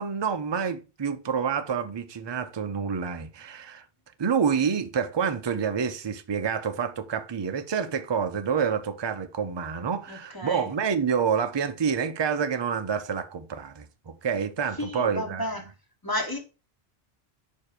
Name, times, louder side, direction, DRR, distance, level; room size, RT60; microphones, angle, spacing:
voice 1, 0.0-3.8 4.2-15.5, right 6 dB, 30° right, 0.5 m, -28 dB
voice 2, 10.1-10.7 14.8-15.6 16.0-16.4, left 1 dB, 20° left, 1.4 m, -32 dB
5.4 x 4.5 x 4.9 m
omnidirectional pair, 1.1 m